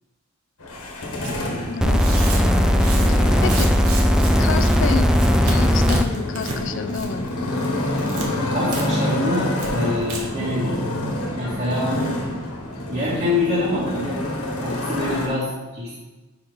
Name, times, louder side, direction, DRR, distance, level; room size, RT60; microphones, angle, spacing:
Motorcycle, 0.6-15.3, left 1 dB, 85° left, 1.4 m, -28 dB
Tearing, 1.2-1.4 1.9-4.3 4.6-4.8 5.1-5.6 5.9-6.6 6.9-7.3 7.6-8.3 8.7-8.8 9.1-9.2 9.6-9.7 10.0-10.2, right 3 dB, 75° right, 1.3 m, -32 dB
voice 1, 1.7-2.0 3.1-3.7 4.4-5.1 5.4-7.3, left 6 dB, 60° left, 10 dB, 0.4 m, -29 dB
sound 1, 1.8-6.0 7.0-7.1, equal, 5° right, 0.4 m, -17 dB
voice 2, 8.5-10.8 11.4-12.2 12.9-14.2 14.6-16.0, left 2 dB, 40° right, -9 dB, 1.7 m, -25 dB
5.2 x 4.8 x 5.3 m, 1.1 s
head